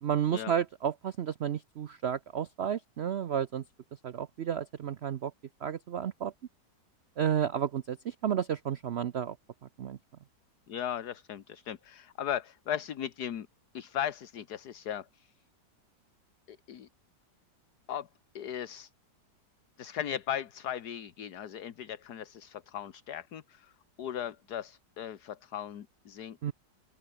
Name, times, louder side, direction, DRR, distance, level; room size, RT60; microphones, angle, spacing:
voice 1, 0.0-3.6 4.0-5.3 5.6-6.3 7.2-9.4 9.8-10.0 26.4-26.5, right 9 dB, 70° right, 0.6 m, -31 dB
voice 2, 10.7-13.5 13.7-15.3 16.5-16.9 17.9-18.1 18.3-18.9 19.8-23.7 24.0-26.5, left 10 dB, 65° left, 1.7 m, -37 dB
open air
omnidirectional pair, 1.9 m